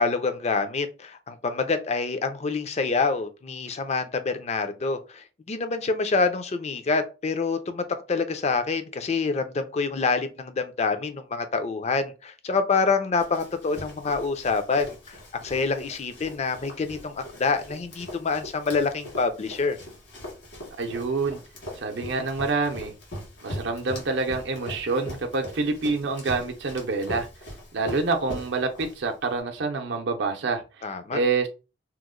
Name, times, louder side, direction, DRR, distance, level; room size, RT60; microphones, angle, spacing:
voice 1, 0.0-15.1 15.4-19.8 30.8-31.2, left 4 dB, 40° left, 0.4 m, -26 dB
Run, 13.2-29.3, equal, 70° left, 1.6 m, -41 dB
voice 2, 20.8-21.4 21.8-22.9 23.4-27.3 27.7-30.8 31.1-31.5, right 3 dB, 70° right, 0.5 m, -27 dB
2.9 x 2.1 x 3.6 m
head